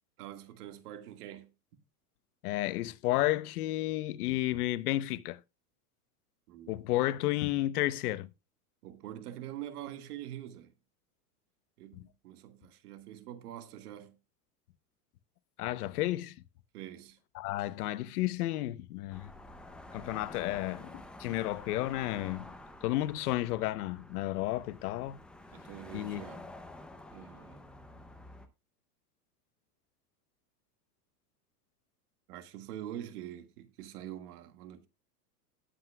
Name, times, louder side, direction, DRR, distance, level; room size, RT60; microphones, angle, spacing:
voice 1, 0.2-1.5 6.5-6.8 8.8-10.7 11.8-14.2 16.7-17.2 25.5-26.5 27.1-27.7 32.3-34.9, right 12 dB, 70° right, 1.8 m, -45 dB
voice 2, 2.4-5.4 6.7-8.3 11.9-12.0 15.6-16.3 17.3-19.3 19.9-22.4 22.8-25.2 25.9-26.2, left 16 dB, 70° left, 0.9 m, -32 dB
sound 1, 19.1-28.5, left 1 dB, ahead, 0.5 m, -49 dB
19.0 x 7.9 x 2.3 m
supercardioid pair, 150°, 47 cm